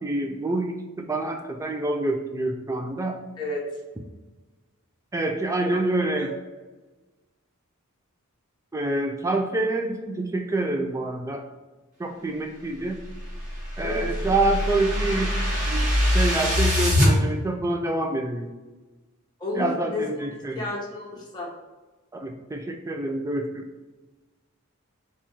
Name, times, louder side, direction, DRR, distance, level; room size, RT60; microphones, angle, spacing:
voice 1, 0.0-3.2 5.1-6.3 8.7-11.4 12.0-13.0 13.8-15.4 15.7-18.5 19.6-20.7 22.1-23.6, right 2 dB, 15° right, 4 dB, 0.3 m, -27 dB
sound 1, 13.1-17.1, left 1 dB, 40° right, 1.4 m, -23 dB
voice 2, 19.4-20.1 20.5-21.5, left 2 dB, 20° left, -4 dB, 0.9 m, -31 dB
4.3 x 2.4 x 4.2 m, 1.2 s
head